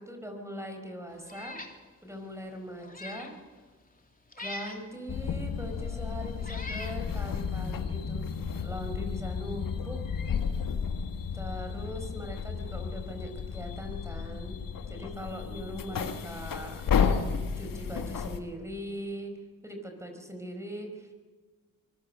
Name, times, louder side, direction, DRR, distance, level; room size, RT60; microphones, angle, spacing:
voice 1, 0.0-1.6 2.0-3.3 4.4-8.3 8.6-10.0 11.3-14.6 14.9-16.8 17.6-19.3 19.6-21.1, equal, 10° right, 4 dB, 4.7 m, -40 dB
Meow, 1.3-1.8 2.2-2.3 2.8-3.4 4.3-4.8 5.7-5.8 6.4-7.0, left 2 dB, 25° left, 3.1 m, -41 dB
sound 1, 5.1-18.4, left 6 dB, 65° left, 1.8 m, -32 dB
24.5 x 17.5 x 6.7 m, 1.4 s
supercardioid pair, 50°, 36 cm